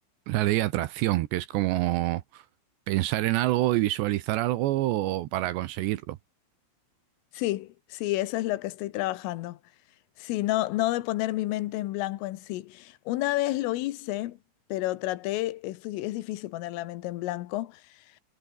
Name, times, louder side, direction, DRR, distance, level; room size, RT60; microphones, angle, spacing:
voice 1, 0.3-2.4 2.9-6.2, right 16 dB, 75° right, 2.7 m, -26 dB
voice 2, 7.3-9.6 10.2-14.4 14.7-17.8, left 17 dB, 85° left, 3.7 m, -30 dB
omnidirectional pair, 5.8 m